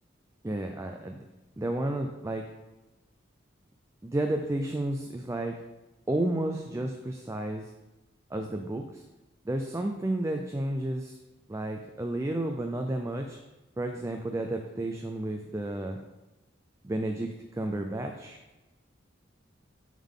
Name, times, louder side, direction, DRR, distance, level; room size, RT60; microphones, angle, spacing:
voice 1, 0.4-0.9 1.6-2.4 4.0-5.6 6.1-7.7 8.3-9.0 9.4-11.2 11.5-13.4 13.8-16.0 16.8-18.4, right 1 dB, 15° right, 4 dB, 0.4 m, -31 dB
10.5 x 3.7 x 3.7 m, 1.1 s
head